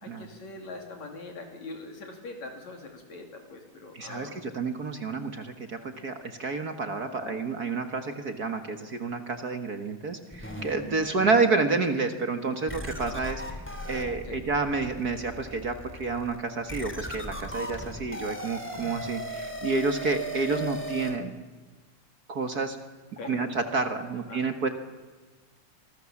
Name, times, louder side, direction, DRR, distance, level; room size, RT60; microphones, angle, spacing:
voice 1, 0.0-4.6 7.0-7.4 11.0-11.3 14.2-14.4 20.5-20.6 23.2-23.4 24.3-24.4, left 3 dB, 65° left, 3 dB, 4.0 m, -43 dB
voice 2, 3.9-13.4 13.8-21.3 22.3-22.8 23.2-24.7, right 4 dB, 45° right, 7 dB, 1.4 m, -29 dB
sound 1, 10.3-11.5 12.0-12.1 12.7-21.1, equal, 5° left, 2.2 m, -38 dB
26.5 x 21.0 x 7.3 m, 1.3 s
omnidirectional pair, 3.5 m